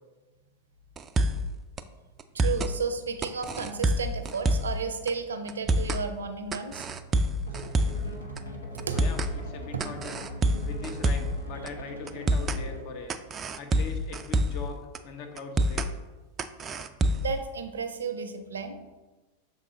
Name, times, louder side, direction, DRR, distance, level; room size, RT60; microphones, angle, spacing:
sound 1, 1.0-1.5 1.8-1.9 2.2-2.7 3.2-4.8 5.1-5.2 5.5-6.0 6.5-8.1 8.4-8.5 8.8-9.3 9.8-11.4 11.7-11.8 12.1-12.6 13.1-14.7 14.9-15.0 15.4-15.9 16.4-17.4, right 1 dB, 25° right, 0.3 m, -26 dB
voice 1, 2.3-6.9 8.7-9.0 9.7-9.9 17.2-18.8, right 5 dB, 70° right, 8 dB, 0.6 m, -33 dB
sound 2, 7.5-13.0, equal, 80° left, 1.0 m, -40 dB
voice 2, 8.9-10.2 10.6-13.1 13.6-15.9, left 4 dB, 45° left, 4 dB, 0.7 m, -41 dB
6.3 x 4.0 x 3.8 m, 1.2 s
figure-of-eight pair, 90°, 0 cm